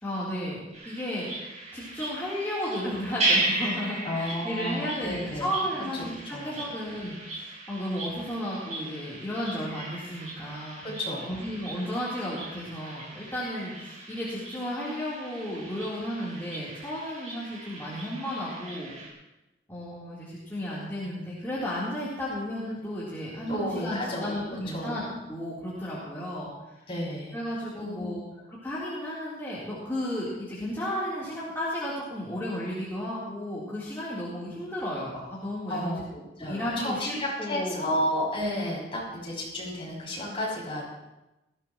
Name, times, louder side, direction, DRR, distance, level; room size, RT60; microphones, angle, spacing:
voice 1, 0.0-10.8 11.3-18.9 19.7-25.0 25.3-26.7 27.3-28.2 28.5-35.9 36.5-37.9, equal, 15° left, -10 dB, 3.6 m, -33 dB
sound 1, 0.7-19.1, right 2 dB, 40° right, 5.3 m, -36 dB
voice 2, 4.0-5.5 6.2-6.7 10.8-11.4 23.5-24.4 24.7-25.0 26.9-27.4 27.8-28.3 35.7-36.0 36.4-40.9, left 1 dB, 35° left, -5 dB, 6.9 m, -32 dB
20.0 x 16.0 x 3.1 m, 1.0 s
head